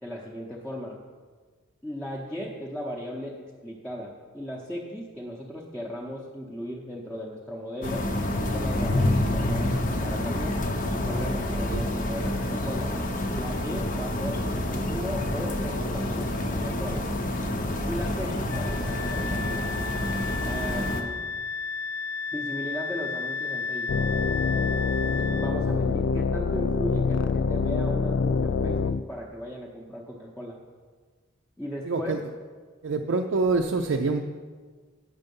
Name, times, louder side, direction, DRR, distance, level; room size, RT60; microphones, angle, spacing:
voice 1, 0.0-1.0 1.8-8.1 8.5-10.6 11.0-12.9 13.4-17.1 17.8-19.7 20.4-21.2 22.3-24.0 25.0-30.6 31.6-32.2, equal, 5° left, -5 dB, 0.7 m, -36 dB
sound 1, 7.8-21.0, left 1 dB, 40° left, 0.7 m, -28 dB
Wind instrument woodwind instrument, 18.5-25.5, left 5 dB, 85° left, 0.8 m, -33 dB
sound 2, 23.9-29.0, left 4 dB, 60° left, 0.3 m, -25 dB
voice 2, 31.9-32.2 32.8-34.2, right 3 dB, 65° right, 2 dB, 0.5 m, -25 dB
9.1 x 6.7 x 5.4 m, 1.5 s
head